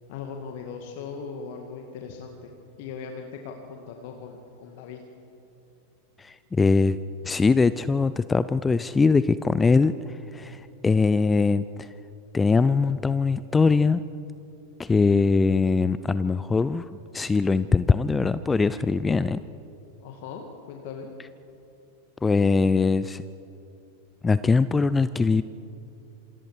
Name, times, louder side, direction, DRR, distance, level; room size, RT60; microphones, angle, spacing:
voice 1, 0.1-2.5 2.8-5.0 20.0-21.1, left 5 dB, 50° left, 3 dB, 1.9 m, -39 dB
voice 2, 6.2-7.0 7.2-11.9 12.3-14.0 14.8-16.9 17.1-19.4 22.2-23.2 24.2-25.4, left 4 dB, 15° left, 15 dB, 0.5 m, -22 dB
27.5 x 26.0 x 4.9 m, 2.8 s
figure-of-eight pair, 90°, 0 cm